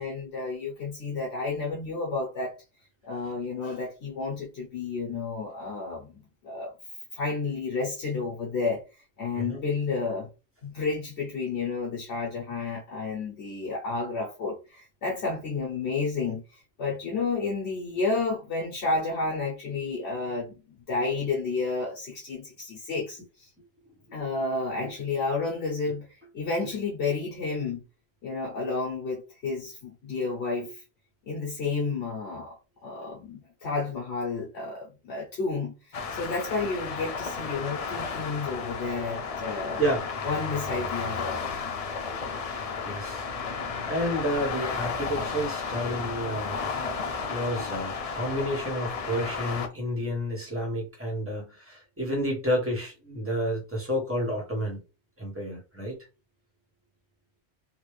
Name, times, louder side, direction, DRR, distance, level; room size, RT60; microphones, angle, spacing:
voice 1, 0.0-2.6 3.0-6.7 7.1-10.3 10.6-23.5 24.1-27.8 28.2-30.8 31.2-32.6 32.8-39.8 40.2-41.4, left 3 dB, 70° left, 1.1 m, -31 dB
sound 1, 35.9-49.7, left 5 dB, 55° left, 0.4 m, -33 dB
voice 2, 42.8-43.3 43.9-46.7 47.3-54.8 55.2-55.9, equal, 10° right, 1.1 m, -30 dB
3.4 x 2.3 x 3.1 m
omnidirectional pair, 1.1 m